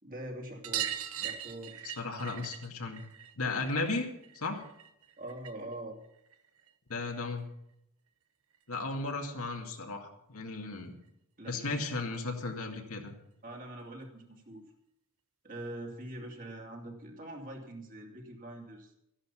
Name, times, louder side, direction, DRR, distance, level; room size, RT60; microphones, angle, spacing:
voice 1, 0.0-1.9 5.2-6.0 11.4-11.8 13.4-14.7 15.4-18.9, right 1 dB, 40° right, 1 dB, 2.8 m, -44 dB
sound 1, 0.6-5.7 6.0-7.2 8.5-8.6 8.8-8.9 9.3-9.4 10.6-10.7 11.0-11.1 11.4-11.5 12.8-12.9 13.7-13.8, right 10 dB, 70° right, 1.0 m, -41 dB
voice 2, 2.0-3.0 3.4-4.1 4.3-4.6 6.9-7.5 8.7-11.0 11.5-13.1, left 3 dB, 70° left, 3 dB, 2.2 m, -35 dB
13.5 x 11.0 x 5.8 m, 0.78 s
head